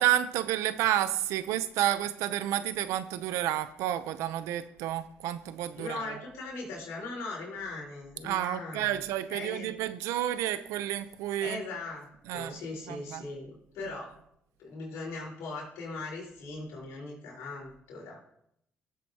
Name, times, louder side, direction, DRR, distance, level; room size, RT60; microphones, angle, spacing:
voice 1, 0.0-6.2 8.2-11.6 12.3-12.6 12.9-13.2, right 12 dB, 90° right, 0.6 m, -30 dB
voice 2, 5.8-9.0 9.3-9.7 11.4-14.1 14.6-18.2, left 3 dB, 85° left, 4.5 m, -39 dB
17.5 x 7.9 x 2.9 m
supercardioid pair, 65°, 5 cm